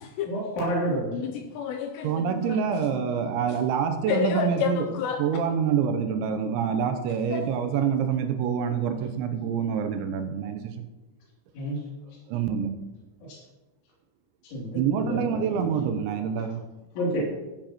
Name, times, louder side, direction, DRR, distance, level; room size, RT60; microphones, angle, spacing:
voice 1, 0.3-1.1 11.5-11.8 14.5-15.6 17.0-17.3, right 1 dB, 70° left, -5 dB, 5.3 m, -29 dB
voice 2, 1.1-2.6 3.5-3.6 4.1-5.2 7.3-7.6, left 7 dB, 85° left, 4 dB, 2.5 m, -30 dB
voice 3, 2.0-4.9 5.2-10.9 12.3-12.8 14.7-16.6, right 7 dB, 80° right, 7 dB, 2.9 m, -26 dB
13.0 x 10.0 x 3.0 m, 1.1 s
omnidirectional pair, 5.7 m